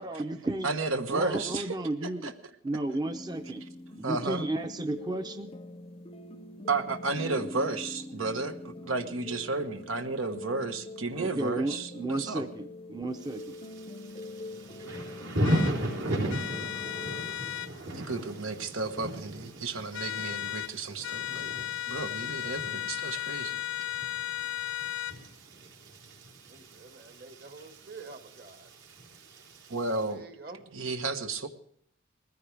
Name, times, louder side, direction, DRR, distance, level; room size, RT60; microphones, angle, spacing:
voice 1, 0.0-0.8 1.1-2.3 2.6-3.6 4.0-5.5 11.1-13.6, right 2 dB, 20° right, 7 dB, 0.6 m, -33 dB
voice 2, 0.6-1.6 2.0-2.3 4.0-4.4 6.7-12.5 17.9-21.5 21.9-23.6 29.7-30.2 30.7-31.5, right 3 dB, 85° right, 7 dB, 1.3 m, -33 dB
sound 1, 3.1-17.2, left 2 dB, 25° left, 0.6 m, -44 dB
Thunder / Rain, 13.2-30.1, equal, 70° right, 3.7 m, -37 dB
sound 2, 15.4-15.7 16.3-17.7 19.9-20.7 21.0-25.2, left 13 dB, 70° left, 0.5 m, -35 dB
voice 3, 26.5-28.7 30.1-30.9, right 3 dB, 50° right, 6 dB, 1.7 m, -48 dB
20.5 x 15.0 x 3.4 m, 0.64 s
head